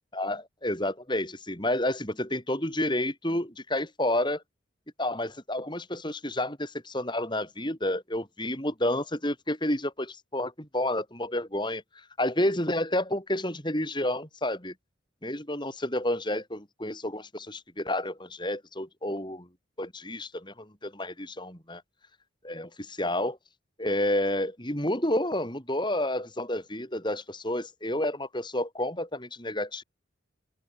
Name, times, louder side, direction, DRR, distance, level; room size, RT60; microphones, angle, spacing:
voice 1, 0.1-4.4 5.0-14.7 15.2-19.5 19.8-21.8 22.4-23.4 23.8-29.8, left 1 dB, 20° left, 7.8 m, -30 dB
head